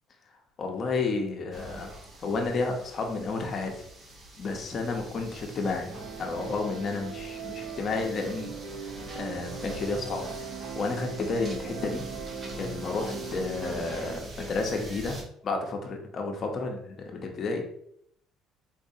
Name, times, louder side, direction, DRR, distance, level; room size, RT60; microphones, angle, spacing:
voice 1, 0.6-1.9 2.2-3.8 4.4-8.6 8.9-12.0 12.6-15.2 15.4-17.6, left 3 dB, 40° left, 3 dB, 0.7 m, -31 dB
sound 1, 1.5-15.2, right 1 dB, 30° right, 0.7 m, -44 dB
sound 2, 5.9-14.2, right 5 dB, 70° right, 1.0 m, -40 dB
3.9 x 2.6 x 2.7 m, 0.70 s
cardioid pair, 135°, 0 cm